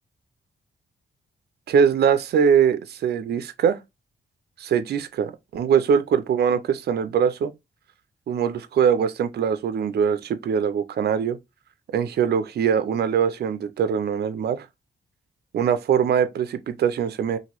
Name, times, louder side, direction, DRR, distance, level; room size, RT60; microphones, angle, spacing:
voice 1, 1.7-3.8 4.6-7.5 8.3-11.4 11.9-14.7 15.5-17.4, right 7 dB, 60° right, 0.4 m, -22 dB
2.9 x 2.6 x 2.8 m
wide cardioid pair, 110°, 19 cm